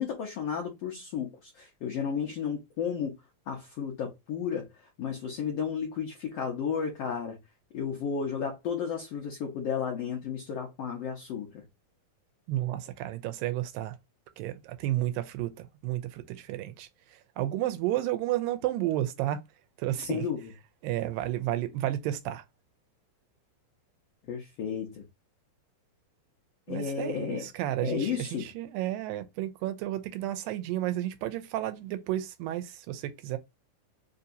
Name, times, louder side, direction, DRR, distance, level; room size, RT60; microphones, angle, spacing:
voice 1, 0.0-3.2 3.5-4.7 5.0-7.4 7.7-11.6 20.0-20.4 24.3-25.1 26.7-27.5 27.8-28.5, left 7 dB, 80° left, 1.4 m, -33 dB
voice 2, 12.5-14.0 14.4-16.9 17.4-19.4 19.8-20.2 20.8-22.4 26.7-33.4, right 14 dB, 85° right, 2.3 m, -32 dB
5.2 x 2.8 x 2.6 m
omnidirectional pair, 4.0 m